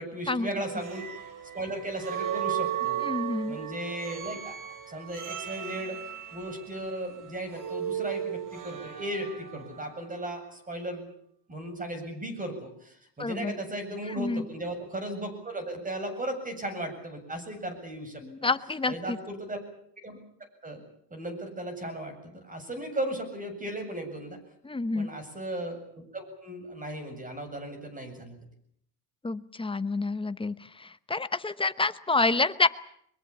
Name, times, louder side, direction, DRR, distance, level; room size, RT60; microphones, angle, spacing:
voice 1, 0.0-3.1 3.5-4.6 4.9-6.0 6.3-11.1 11.5-18.5 18.9-19.6 20.0-20.2 20.6-20.8 21.1-24.4 24.9-28.4, right 1 dB, 20° right, 8 dB, 7.8 m, -36 dB
sound 1, 0.6-9.9, right 10 dB, 45° right, 3.2 m, -35 dB
voice 2, 3.0-3.6 13.2-13.5 14.2-14.4 18.2-19.2 24.6-25.1 29.2-32.7, left 3 dB, 10° left, 13 dB, 1.0 m, -28 dB
23.5 x 22.0 x 8.6 m, 0.68 s
cardioid pair, 120°, 45 cm